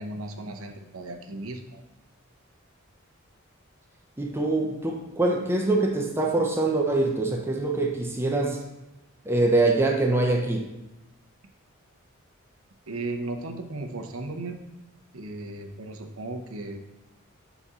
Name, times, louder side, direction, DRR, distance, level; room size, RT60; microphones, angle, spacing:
voice 1, 0.0-1.8 12.9-14.6 15.1-16.8, right 2 dB, 80° right, 4 dB, 0.8 m, -35 dB
voice 2, 4.2-8.6 9.2-10.6, right 2 dB, 10° right, 1 dB, 0.6 m, -24 dB
7.1 x 4.1 x 3.6 m, 1.0 s
head